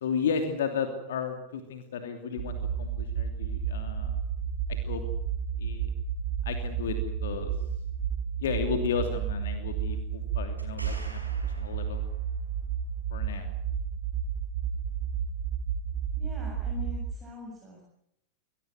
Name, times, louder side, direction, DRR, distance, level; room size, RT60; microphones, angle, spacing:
voice 1, 0.0-4.1 4.7-5.0 5.6-5.9 6.4-7.5 8.4-12.0 13.1-13.5, left 6 dB, 60° left, 6 dB, 2.9 m, -33 dB
sound 1, 2.4-17.1, right 7 dB, 50° right, 2.4 m, -32 dB
sound 2, 10.6-12.6 16.2-16.3, right 1 dB, 85° right, 5.2 m, -48 dB
voice 2, 16.2-17.8, left 4 dB, 20° right, -1 dB, 7.4 m, -43 dB
25.0 x 18.0 x 7.9 m, 0.77 s
figure-of-eight pair, 90°, 0 cm